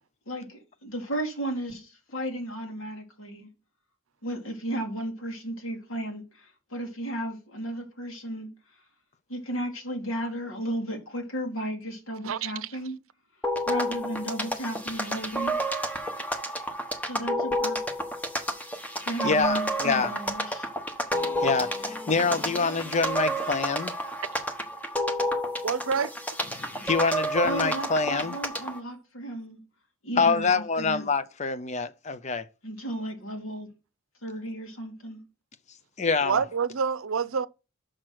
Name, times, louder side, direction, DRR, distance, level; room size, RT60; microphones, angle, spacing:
voice 1, 0.3-3.5 4.2-8.5 9.3-13.0 13.7-15.6 17.0-17.8 19.0-20.7 27.4-29.6 30.0-31.1 32.6-33.7 34.2-35.2, right 1 dB, 85° left, 2.4 m, -34 dB
sound 1, 13.4-28.8, equal, 10° left, 1.1 m, -30 dB
voice 2, 19.2-20.1 21.4-23.9 26.5-28.3 30.2-32.4 36.0-36.4, left 4 dB, 35° left, 0.5 m, -26 dB
voice 3, 25.6-26.1 36.3-37.5, right 6 dB, 85° right, 0.6 m, -26 dB
6.4 x 6.1 x 6.2 m
head